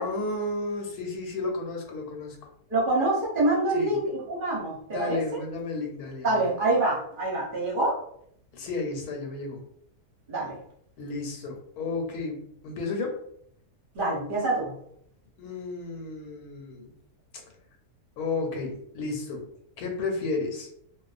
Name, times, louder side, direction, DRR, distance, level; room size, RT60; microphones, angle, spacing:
voice 1, 0.0-2.4 3.7-4.0 4.9-6.4 8.5-9.6 11.0-13.2 15.4-16.9 18.2-19.5 19.8-20.7, left 3 dB, 85° left, 2 dB, 1.1 m, -32 dB
voice 2, 2.7-5.4 6.2-7.9 10.3-10.6 13.9-14.7, right 2 dB, 45° right, -4 dB, 0.7 m, -26 dB
2.4 x 2.2 x 2.4 m, 0.69 s
omnidirectional pair, 1.6 m